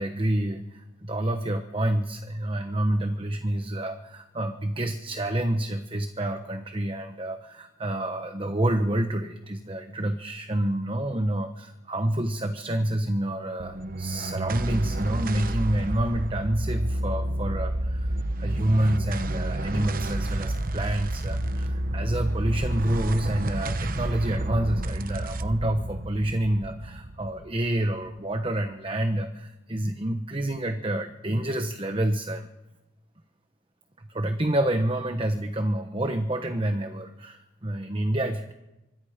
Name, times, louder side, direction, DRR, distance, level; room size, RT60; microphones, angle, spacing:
voice 1, 0.0-32.5 34.0-38.5, right 1 dB, 30° right, 7 dB, 1.1 m, -28 dB
sound 1, 13.6-28.2, right 1 dB, 50° right, 1.0 m, -30 dB
26.0 x 24.5 x 5.1 m, 1.0 s
head